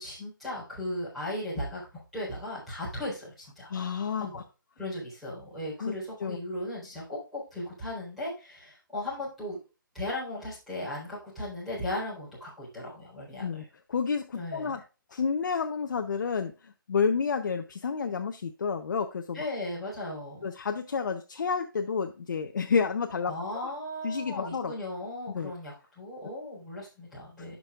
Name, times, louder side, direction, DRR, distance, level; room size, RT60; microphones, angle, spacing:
voice 1, 0.0-4.4 4.8-9.6 9.9-13.6 14.3-14.8 19.3-20.5 23.2-27.6, left 1 dB, ahead, -11 dB, 4.0 m, -37 dB
voice 2, 3.7-4.4 5.8-5.9 6.2-6.4 13.4-13.6 13.9-14.8 15.1-19.4 20.4-23.3 24.0-24.7 25.3-25.5, left 5 dB, 60° left, 6 dB, 0.7 m, -30 dB
12.5 x 6.2 x 2.4 m, 0.31 s
hypercardioid pair, 165°, 12 cm